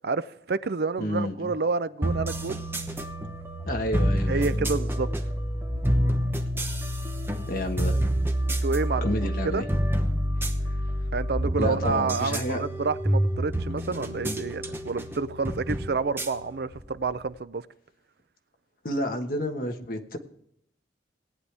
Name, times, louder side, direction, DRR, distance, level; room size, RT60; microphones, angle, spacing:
voice 1, 0.0-2.6 4.3-5.1 8.5-9.6 11.1-17.6, right 4 dB, 55° right, 0.5 m, -29 dB
voice 2, 1.0-1.5 3.7-4.7 7.5-8.0 9.0-9.7 11.6-12.6 18.8-20.2, left 1 dB, 50° left, 1.4 m, -30 dB
sound 1, 2.0-17.3, equal, 10° right, 0.9 m, -28 dB
18.0 x 9.7 x 3.4 m
head